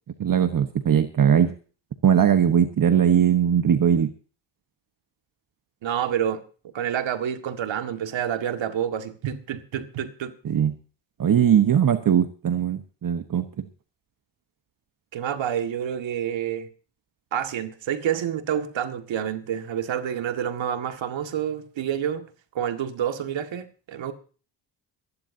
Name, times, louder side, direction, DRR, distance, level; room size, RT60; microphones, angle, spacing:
voice 1, 0.2-1.5 2.0-4.1 10.4-10.7 11.2-13.7, right 8 dB, 45° right, 1.2 m, -20 dB
voice 2, 5.8-6.4 6.7-10.3 15.1-16.7 17.3-22.3 22.5-24.1, right 9 dB, 80° right, 1.9 m, -28 dB
26.5 x 11.0 x 2.8 m
cardioid pair, 95°, 45 cm